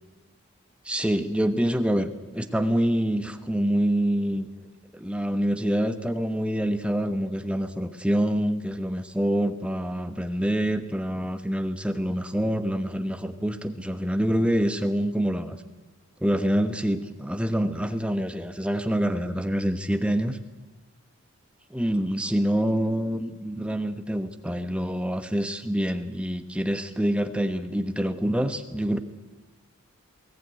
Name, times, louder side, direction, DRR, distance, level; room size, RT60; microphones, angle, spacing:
voice 1, 0.8-4.5 4.9-15.6 16.2-20.4 21.7-29.0, equal, 5° right, 8 dB, 1.1 m, -26 dB
22.0 x 17.5 x 9.3 m, 1.2 s
head